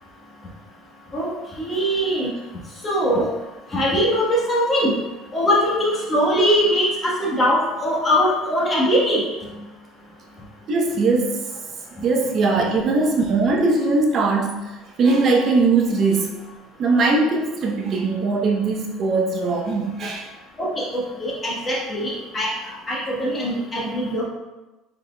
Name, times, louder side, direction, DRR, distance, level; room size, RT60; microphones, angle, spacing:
voice 1, 1.6-2.3 2.8-3.3 3.7-4.9 5.3-9.2 20.6-22.5 22.9-24.2, equal, 25° left, -5 dB, 1.3 m, -21 dB
voice 2, 10.7-11.4 12.0-14.6 15.0-16.4 16.8-20.3, right 3 dB, 40° right, 1 dB, 0.7 m, -20 dB
4.7 x 4.0 x 2.2 m, 1.1 s
cardioid pair, 135°, 0 cm